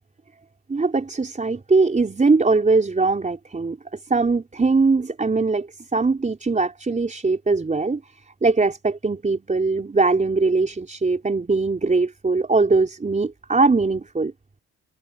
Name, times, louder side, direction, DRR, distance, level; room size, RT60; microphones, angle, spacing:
voice 1, 0.7-3.8 4.1-8.0 8.4-14.3, right 3 dB, 25° right, 4.7 m, -21 dB
cardioid pair, 90°, 30 cm